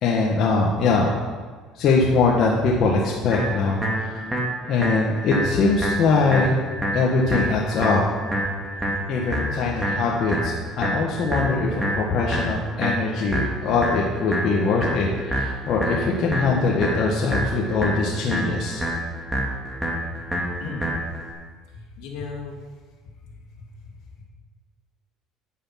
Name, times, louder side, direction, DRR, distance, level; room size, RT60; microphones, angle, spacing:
voice 1, 0.0-1.3 1.7-4.2 4.7-6.5 6.9-8.0 9.1-18.8, left 4 dB, 55° left, -2 dB, 1.7 m, -22 dB
sound 1, 3.3-21.3, equal, 10° right, 2.3 m, -28 dB
voice 2, 20.5-20.9 21.7-22.6 23.2-24.2, left 4 dB, 75° left, 0 dB, 2.7 m, -37 dB
9.9 x 9.8 x 6.0 m, 1.4 s
cardioid pair, 115°, 0 cm